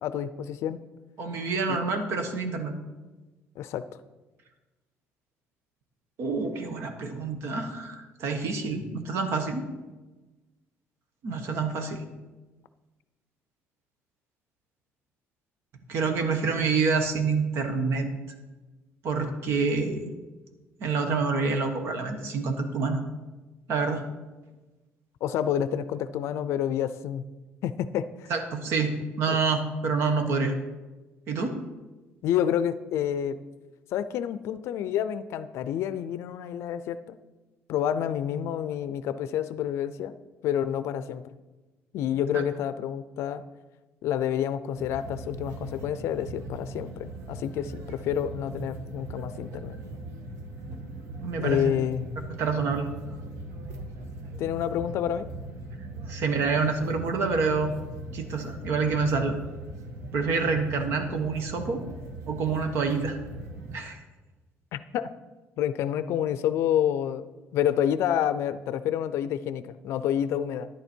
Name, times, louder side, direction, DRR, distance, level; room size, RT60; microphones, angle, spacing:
voice 1, 0.0-0.8 1.7-1.8 3.6-3.8 25.2-27.2 27.6-28.3 29.3-29.4 32.2-33.4 33.9-37.2 37.7-40.1 40.4-41.2 41.9-43.4 44.0-49.8 51.4-52.2 54.4-55.3 64.7-65.1 65.6-70.7, left 10 dB, 65° left, 13 dB, 0.5 m, -28 dB
voice 2, 1.2-2.7 6.2-9.7 11.2-12.0 15.9-18.4 19.0-20.1 20.8-23.0 23.7-24.0 28.3-30.5 31.3-31.6 42.3-42.4 51.2-51.7 52.4-52.9 55.8-57.7 58.1-59.4 60.1-61.8 62.3-63.2 63.7-64.0, right 4 dB, 60° right, 7 dB, 1.3 m, -27 dB
sound 1, 44.8-63.8, right 2 dB, 75° right, 1.5 m, -40 dB
10.5 x 9.8 x 4.5 m, 1.2 s
cardioid pair, 165°, 5 cm